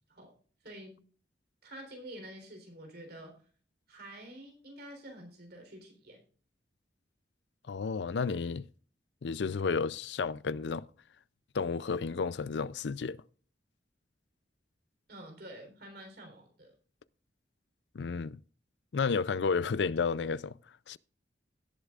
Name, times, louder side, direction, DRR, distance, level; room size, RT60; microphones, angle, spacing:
voice 1, 0.6-1.0 1.6-3.3 3.9-6.2 15.1-16.7, right 1 dB, 60° right, 3.8 m, -48 dB
voice 2, 7.7-8.7 9.2-10.9 11.5-13.2 17.9-18.4 18.9-20.6 20.9-21.0, left 5 dB, 70° left, 0.5 m, -32 dB
17.5 x 8.2 x 2.4 m
head